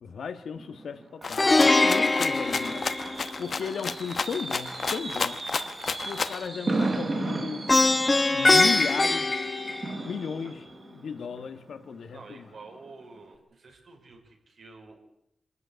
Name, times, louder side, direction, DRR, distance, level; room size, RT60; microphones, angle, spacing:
voice 1, 0.0-2.9 3.4-5.4 6.0-7.7 8.2-9.5 10.0-12.5, left 6 dB, 70° left, 1.5 m, -35 dB
Fireworks, 0.6-12.3 12.6-12.9 13.2-13.3, right 2 dB, 30° right, 3.8 m, -35 dB
Rattle (instrument), 1.2-6.5, left 5 dB, 45° left, 1.2 m, -32 dB
Plucked string instrument, 1.4-3.5 7.7-10.3, left 2 dB, 20° left, 1.0 m, -22 dB
voice 2, 12.1-15.0, right 3 dB, 60° right, 4.8 m, -49 dB
25.5 x 14.0 x 9.6 m
wide cardioid pair, 145°, 0 cm